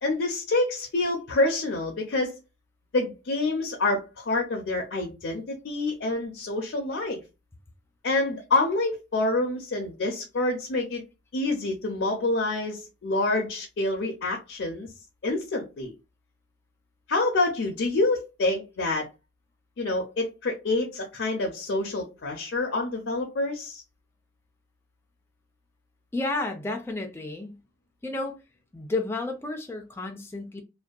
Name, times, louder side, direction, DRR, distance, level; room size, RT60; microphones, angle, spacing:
voice 1, 0.0-2.3 2.9-7.2 8.0-11.0 11.3-14.9 15.2-15.9 17.1-19.1 19.8-23.8, left 2 dB, 75° left, 0.5 m, -27 dB
voice 2, 26.1-27.6 28.0-28.4 28.7-30.6, left 2 dB, 10° left, 0.3 m, -31 dB
2.6 x 2.2 x 2.3 m
head